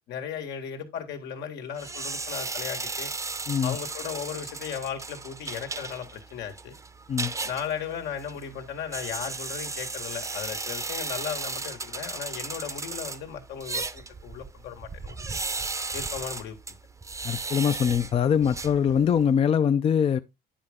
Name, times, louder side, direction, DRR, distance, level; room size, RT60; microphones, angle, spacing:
voice 1, 0.1-3.1 3.6-6.7 7.4-15.3 15.9-16.6, left 8 dB, 80° left, 1.9 m, -36 dB
sound 1, 1.8-19.3, right 3 dB, 20° right, 0.7 m, -36 dB
voice 2, 17.2-20.2, left 8 dB, 35° left, 0.5 m, -23 dB
10.0 x 5.3 x 3.6 m
cardioid pair, 110°, 17 cm